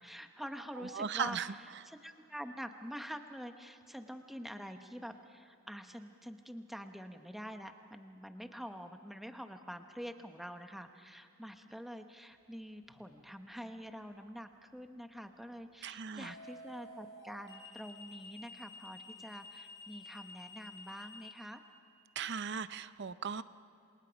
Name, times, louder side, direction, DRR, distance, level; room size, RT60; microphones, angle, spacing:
voice 1, 0.0-21.6, equal, ahead, 6 dB, 1.0 m, -46 dB
voice 2, 0.9-1.5 15.8-16.3 22.2-23.4, right 6 dB, 50° right, 14 dB, 0.6 m, -37 dB
sound 1, 12.9-13.2 16.2-21.3, left 2 dB, 55° left, 4.8 m, -52 dB
28.0 x 27.0 x 5.2 m, 2.8 s
head